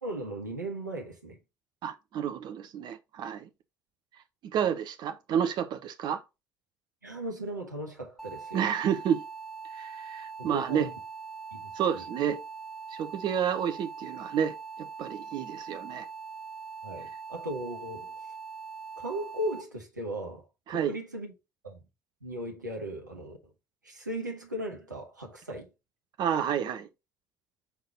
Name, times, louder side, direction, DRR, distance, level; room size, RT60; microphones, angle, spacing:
voice 1, 0.0-1.4 7.0-8.6 10.4-10.9 11.5-12.0 16.8-18.1 19.0-21.3 21.6-21.8 22.2-23.5 23.8-25.7, right 1 dB, 85° right, 1.2 m, -37 dB
voice 2, 1.8-3.5 4.5-6.2 8.5-9.2 9.7-10.9 11.7-12.4 12.9-14.6 15.0-16.1 20.7-21.0 26.2-26.9, right 8 dB, 50° right, 0.9 m, -30 dB
sound 1, 8.2-19.6, right 5 dB, 5° left, 1.1 m, -42 dB
7.1 x 3.9 x 3.9 m
figure-of-eight pair, 55°, 10 cm